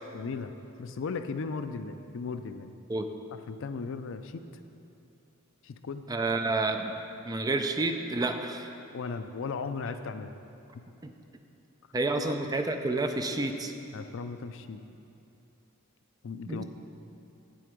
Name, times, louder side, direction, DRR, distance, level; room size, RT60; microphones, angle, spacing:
voice 1, 0.1-0.5 0.8-2.7 3.3-4.4 5.6-6.0 8.9-10.3 10.7-10.8 12.2-12.4 13.9-14.8 16.2-16.6, left 4 dB, 60° left, 10 dB, 0.4 m, -36 dB
voice 2, 6.1-6.9 7.2-8.7 11.9-13.7 16.5-16.6, right 2 dB, 15° right, 6 dB, 0.4 m, -29 dB
8.4 x 7.7 x 5.1 m, 2.9 s
head